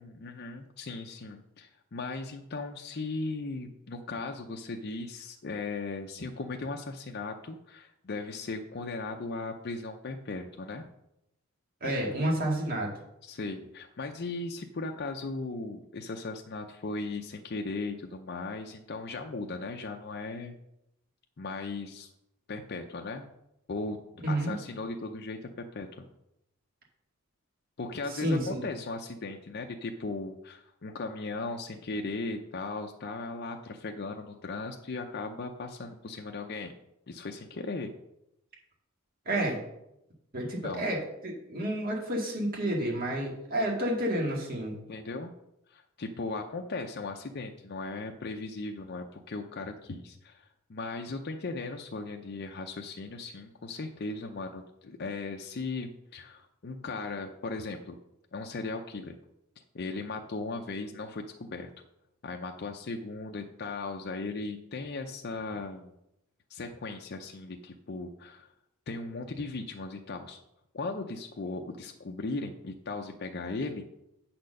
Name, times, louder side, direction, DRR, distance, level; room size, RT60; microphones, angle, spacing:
voice 1, 0.0-10.8 13.2-20.5 21.4-22.1 22.5-23.3 23.7-24.0 24.3-26.1 27.8-36.7 37.1-37.9 40.6-40.8 44.9-45.3 45.7-58.0 58.3-59.2 59.7-61.7 62.2-65.9 66.5-68.5 68.9-70.4 70.7-73.8, left 3 dB, 45° left, 3 dB, 0.5 m, -37 dB
voice 2, 11.8-12.9 24.2-24.5 28.1-28.7 39.3-39.6 40.3-44.8, right 1 dB, 40° right, -2 dB, 1.9 m, -30 dB
8.3 x 4.4 x 6.4 m, 0.84 s
head